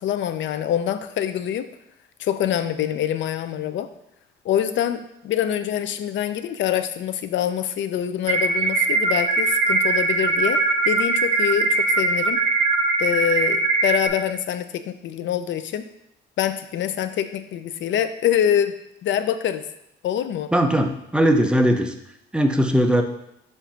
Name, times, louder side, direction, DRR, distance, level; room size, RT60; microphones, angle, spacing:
voice 1, 0.0-1.7 2.2-3.9 4.4-10.6 10.9-12.4 13.0-15.9 16.4-18.7 19.0-19.6 20.0-20.5, left 10 dB, 70° left, 11 dB, 0.5 m, -25 dB
sound 1, 8.3-14.1, right 3 dB, 35° right, 1.6 m, -21 dB
voice 2, 20.5-21.9 22.3-23.0, equal, 5° right, 5 dB, 0.7 m, -19 dB
7.2 x 2.7 x 5.7 m, 0.81 s
cardioid pair, 90°, 20 cm